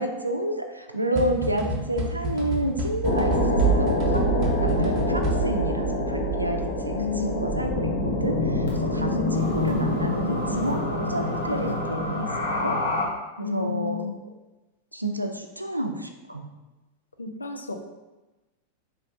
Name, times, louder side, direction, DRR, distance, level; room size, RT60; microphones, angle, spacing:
voice 1, 0.0-4.2 4.6-8.4 8.8-12.4 12.6-12.8 13.4-14.0 14.9-16.5, right 1 dB, 85° right, 5 dB, 0.4 m, -30 dB
sound 1, 1.2-5.8, equal, 35° right, 0.7 m, -31 dB
sound 2, 3.0-13.0, equal, 60° left, 0.9 m, -25 dB
voice 2, 4.6-4.9 6.9-8.5 8.9-9.2 13.4-14.2 17.2-17.8, left 5 dB, 80° left, 5 dB, 0.4 m, -33 dB
4.2 x 3.1 x 2.6 m, 1.1 s
figure-of-eight pair, 90°, 0 cm